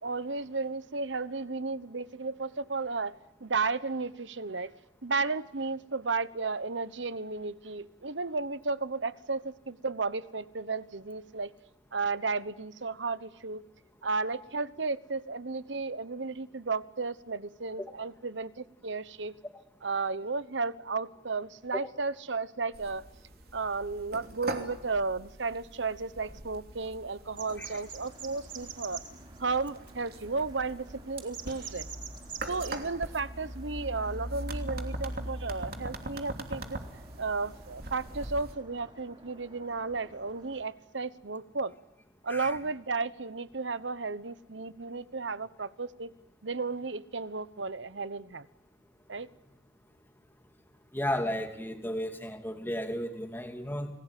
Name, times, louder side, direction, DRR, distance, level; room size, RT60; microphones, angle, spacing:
voice 1, 0.0-4.7 5.0-11.5 11.9-13.6 14.0-19.3 19.8-23.1 23.5-29.0 29.4-31.9 32.5-36.8 37.2-41.7 42.2-46.1 46.4-48.5 49.1-49.3, right 4 dB, 80° right, 15 dB, 1.1 m, -33 dB
sound 1, 22.7-38.5, right 1 dB, 55° right, 3.1 m, -41 dB
sound 2, 27.3-40.6, right 5 dB, 25° right, 6.2 m, -49 dB
voice 2, 50.9-53.9, left 1 dB, 10° left, 5 dB, 2.8 m, -34 dB
29.5 x 20.5 x 9.3 m, 0.85 s
head